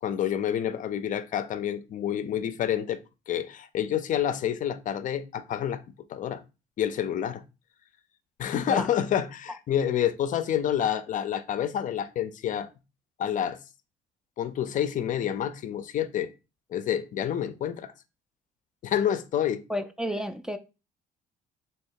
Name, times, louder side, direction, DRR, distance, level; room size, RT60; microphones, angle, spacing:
voice 1, 0.0-3.0 3.3-5.8 6.1-6.4 6.8-7.4 8.4-12.7 13.2-13.6 14.4-16.3 16.7-17.9 18.8-19.6, left 10 dB, 50° left, 0.5 m, -28 dB
voice 2, 19.7-20.6, equal, 5° right, 0.4 m, -31 dB
3.2 x 2.9 x 4.6 m
cardioid pair, 110°, 17 cm